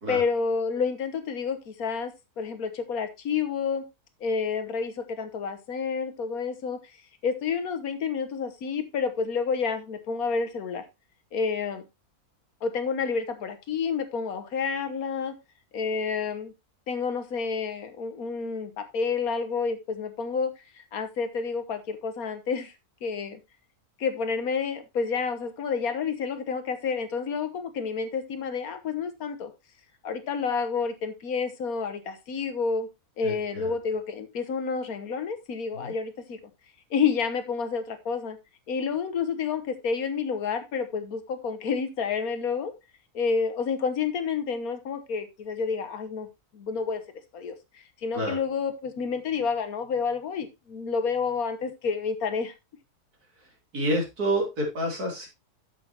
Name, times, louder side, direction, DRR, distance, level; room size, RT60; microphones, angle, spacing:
voice 1, 0.1-3.8 4.2-6.9 7.2-10.8 11.3-11.9 12.6-15.3 15.7-16.5 16.9-22.7 23.0-23.4 24.0-29.5 30.0-32.9 33.2-36.4 36.9-38.4 38.7-42.7 43.1-46.3 46.5-47.0 47.3-52.5, left 5 dB, 70° left, 9 dB, 1.5 m, -29 dB
voice 2, 33.2-33.7 35.7-35.9 48.1-48.4 53.4-53.5 53.7-55.3, right 1 dB, 80° right, 0 dB, 3.5 m, -29 dB
9.2 x 7.3 x 2.9 m, 0.23 s
omnidirectional pair, 1.6 m